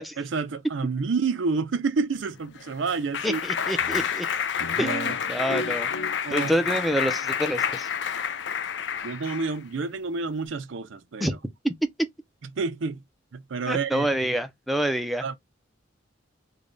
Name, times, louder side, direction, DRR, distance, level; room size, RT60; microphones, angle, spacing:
voice 1, 0.2-3.4 4.6-5.1 6.2-6.5 9.0-11.3 12.5-13.0 13.3-14.1 15.2-15.4, right 4 dB, 90° right, 0.5 m, -29 dB
Clapping, 2.3-9.6, left 7 dB, 70° left, 0.5 m, -29 dB
voice 2, 3.2-4.3 4.8-5.9 6.3-7.9 11.2-11.3 11.6-11.7 13.7-15.2, equal, ahead, 0.5 m, -27 dB
3.2 x 2.3 x 3.8 m
head